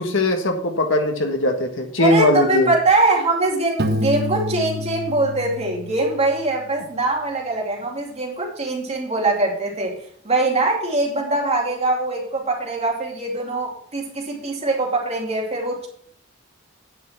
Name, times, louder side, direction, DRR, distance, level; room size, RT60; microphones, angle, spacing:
voice 1, 0.0-2.7, left 2 dB, 75° left, 4 dB, 1.6 m, -20 dB
voice 2, 2.0-10.0 10.2-15.9, right 2 dB, 35° right, -1 dB, 2.6 m, -22 dB
Piano, 3.8-6.5, equal, 55° right, 1.1 m, -27 dB
9.3 x 5.7 x 5.9 m, 0.63 s
head